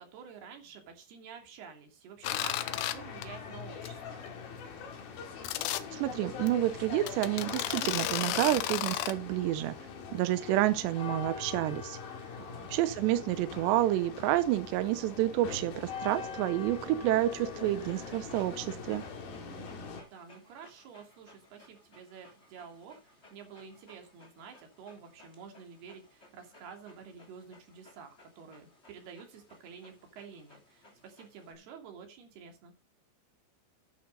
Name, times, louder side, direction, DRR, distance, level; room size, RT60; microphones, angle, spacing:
voice 1, 0.0-4.2 12.3-12.7 19.5-32.7, right 6 dB, 65° right, 4.5 m, -50 dB
sound 1, 2.2-2.9 3.2-3.5 3.8-3.9 4.3-4.4 5.4-5.8 6.5-6.6 7.1-9.1, left 14 dB, 90° left, 3.2 m, -33 dB
sound 2, 2.2-20.0, left 6 dB, 60° left, 4.0 m, -42 dB
voice 2, 5.9-9.8 10.1-12.0 12.7-19.0, right 14 dB, 80° right, 2.8 m, -29 dB
Dog, 17.6-31.5, left 1 dB, 15° left, 2.8 m, -60 dB
12.0 x 9.9 x 4.0 m
omnidirectional pair, 5.1 m